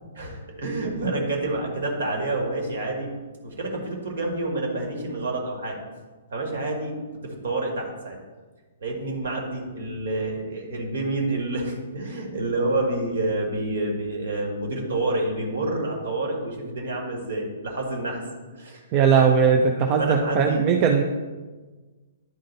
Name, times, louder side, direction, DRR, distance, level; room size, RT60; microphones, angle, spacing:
voice 1, 0.0-3.1 3.4-5.8 6.3-8.2 8.8-18.2 18.5-18.8 20.0-20.6, right 2 dB, 60° right, 1 dB, 1.9 m, -28 dB
voice 2, 18.9-21.0, right 6 dB, 30° right, 2 dB, 0.6 m, -19 dB
10.5 x 3.7 x 4.0 m, 1.3 s
figure-of-eight pair, 120°, 0 cm